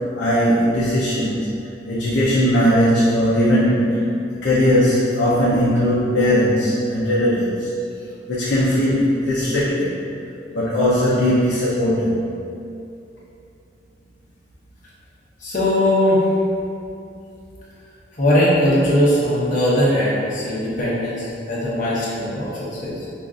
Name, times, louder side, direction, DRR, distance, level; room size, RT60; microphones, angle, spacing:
voice 1, 0.2-1.5 1.9-4.1 4.4-7.7 8.3-10.0 10.5-12.2, equal, 90° left, -9 dB, 0.6 m, -18 dB
voice 2, 15.4-16.3 18.2-23.1, left 1 dB, 45° left, -8 dB, 1.0 m, -19 dB
5.3 x 2.5 x 2.5 m, 2.6 s
head